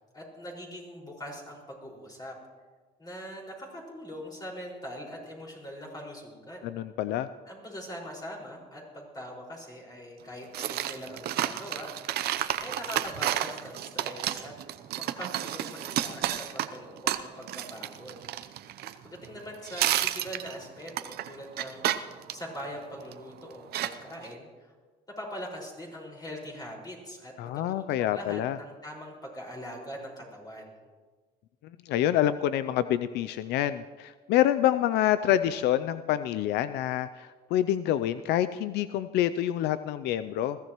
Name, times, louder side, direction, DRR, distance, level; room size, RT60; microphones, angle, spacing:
voice 1, 0.1-2.3 3.0-6.8 7.5-12.3 12.6-18.2 19.0-24.7 25.2-30.8, equal, 25° left, -2 dB, 5.2 m, -42 dB
voice 2, 6.6-7.3 27.4-28.6 31.9-40.6, left 12 dB, 80° left, 13 dB, 0.5 m, -27 dB
sound 1, 10.5-19.4 19.7-23.2 23.7-24.3, right 12 dB, 70° right, 0.7 m, -31 dB
21.0 x 15.5 x 3.1 m, 1.4 s
cardioid pair, 110°, 17 cm